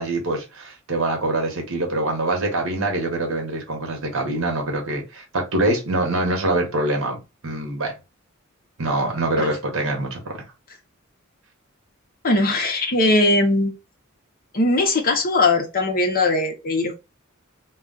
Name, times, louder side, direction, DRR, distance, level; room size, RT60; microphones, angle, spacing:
voice 1, 0.0-7.9 8.8-10.4, right 2 dB, 70° right, 1.0 m, -24 dB
voice 2, 12.2-13.7 14.5-17.0, left 2 dB, 45° left, 0.8 m, -20 dB
2.3 x 2.3 x 3.7 m
head